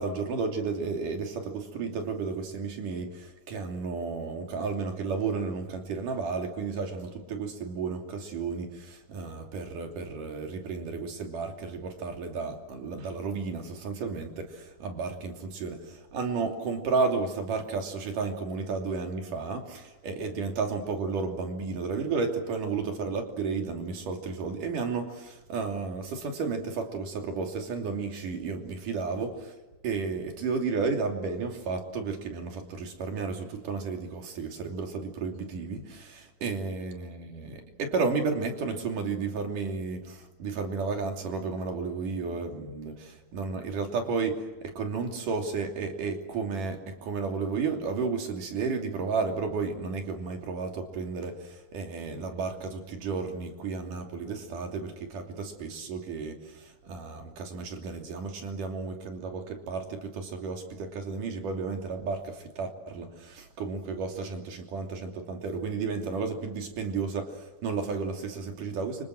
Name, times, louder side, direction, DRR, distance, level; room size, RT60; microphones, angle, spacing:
voice 1, 0.0-29.5 29.8-69.1, right 4 dB, 85° right, 4 dB, 4.5 m, -32 dB
29.5 x 25.5 x 7.8 m, 1.1 s
omnidirectional pair, 3.6 m